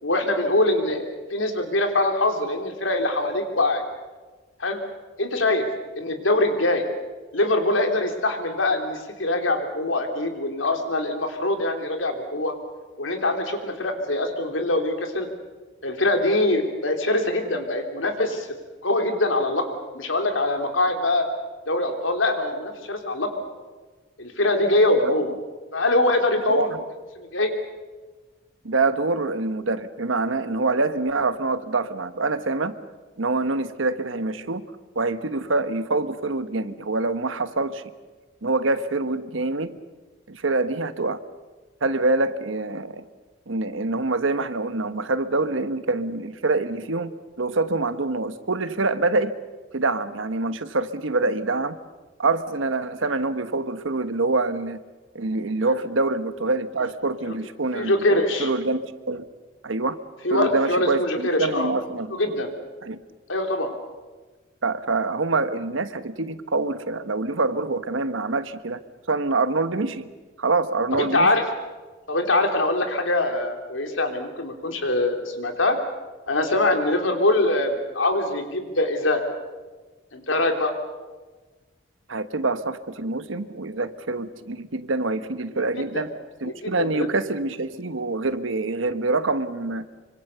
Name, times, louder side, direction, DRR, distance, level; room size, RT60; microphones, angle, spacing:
voice 1, 0.0-3.8 4.6-4.8 5.2-5.6 6.0-6.8 7.3-12.5 13.0-15.3 15.8-18.5 18.8-19.7 19.9-21.3 21.7-23.4 24.2-25.3 25.7-26.7 27.2-27.5 55.6-55.8 57.3-57.4 57.7-58.5 60.2-61.7 62.1-62.5 63.3-63.7 70.9-71.4 72.1-75.8 76.3-79.2 80.1-80.7 85.7-86.0 86.4-87.1, left 2 dB, 85° left, 4 dB, 3.3 m, -23 dB
voice 2, 24.6-25.1 26.5-26.8 28.6-32.7 33.2-34.6 34.9-37.8 38.4-39.7 40.3-41.2 41.8-43.0 43.5-47.1 47.4-49.3 49.7-51.8 52.2-54.8 55.1-59.3 59.6-60.0 60.3-62.2 62.8-63.0 64.6-68.8 69.1-70.1 70.4-71.3 82.1-86.1 86.4-89.8, right 3 dB, 85° right, 12 dB, 1.2 m, -25 dB
25.5 x 25.0 x 6.9 m, 1.3 s
head